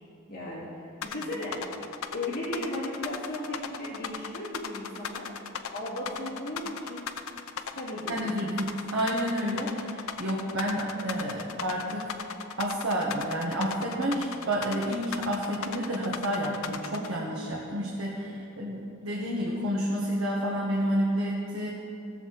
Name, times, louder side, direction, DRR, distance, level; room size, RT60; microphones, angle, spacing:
voice 1, 0.3-1.6 2.1-5.3 5.7-7.0 7.7-8.5, left 1 dB, 45° left, -8 dB, 2.4 m, -36 dB
sound 1, 1.0-17.1, left 7 dB, 75° left, 0.6 m, -37 dB
voice 2, 8.1-12.1 12.6-21.7, equal, 75° right, -4 dB, 1.4 m, -30 dB
16.0 x 7.2 x 4.0 m, 2.6 s
head